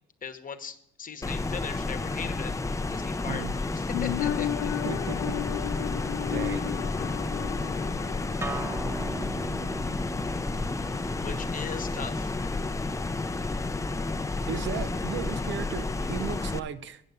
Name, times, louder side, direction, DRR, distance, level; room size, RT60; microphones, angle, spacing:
voice 1, 0.2-2.5 2.9-4.8 11.2-12.3, left 6 dB, 45° left, 9 dB, 1.1 m, -39 dB
sound 1, 1.2-16.6, left 3 dB, 15° left, 0.6 m, -31 dB
sound 2, 3.9-9.4 9.7-9.8, left 12 dB, 90° left, 0.4 m, -34 dB
voice 2, 4.9-5.4 6.3-6.7 14.5-17.0, right 8 dB, 70° right, 13 dB, 0.7 m, -36 dB
Acoustic guitar, 8.4-13.6, right 2 dB, 10° right, 0.9 m, -40 dB
9.0 x 6.5 x 8.2 m, 0.72 s
cardioid pair, 90°, 20 cm